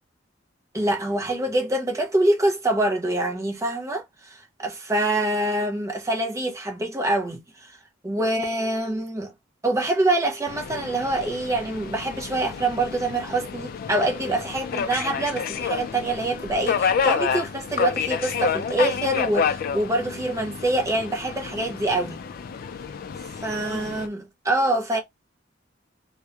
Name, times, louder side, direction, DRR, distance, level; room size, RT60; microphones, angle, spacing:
voice 1, 0.7-7.8 8.0-9.3 9.6-22.2 23.4-25.0, right 2 dB, 15° right, 0.5 m, -25 dB
Subway metro underground, 10.5-24.1, left 6 dB, 50° left, 0.3 m, -29 dB
2.8 x 2.0 x 2.3 m
head